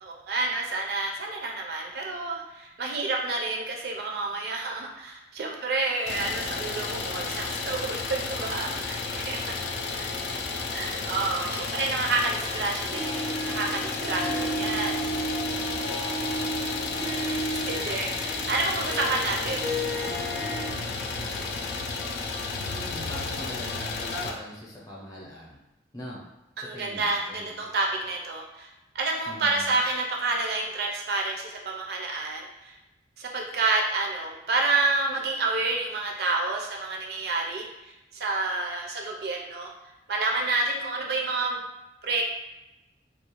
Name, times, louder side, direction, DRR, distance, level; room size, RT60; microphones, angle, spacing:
voice 1, 0.0-9.6 9.9-10.1 10.7-15.0 17.7-19.8 26.6-32.8 33.2-39.7 40.1-41.6 42.0-42.2, right 3 dB, 55° right, 0 dB, 0.4 m, -29 dB
Idling, 6.1-24.3, left 4 dB, 60° left, 0.3 m, -32 dB
Harp, 12.9-20.7, right 1 dB, 90° left, 0.8 m, -33 dB
voice 2, 14.1-14.9 22.3-25.6 25.9-26.2 26.7-27.7 29.3-29.8, left 1 dB, 20° left, -5 dB, 0.6 m, -42 dB
2.4 x 2.2 x 2.9 m, 0.96 s
head